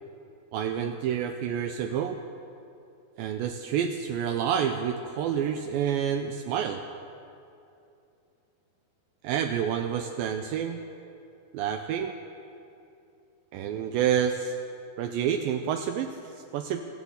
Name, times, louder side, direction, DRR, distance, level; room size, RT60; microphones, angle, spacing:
voice 1, 0.5-2.2 3.2-6.8 9.2-10.8 11.5-12.1 13.5-14.6 15.0-16.9, right 8 dB, 90° right, 6 dB, 2.0 m, -28 dB
14.5 x 9.9 x 8.0 m, 2.6 s
omnidirectional pair, 4.6 m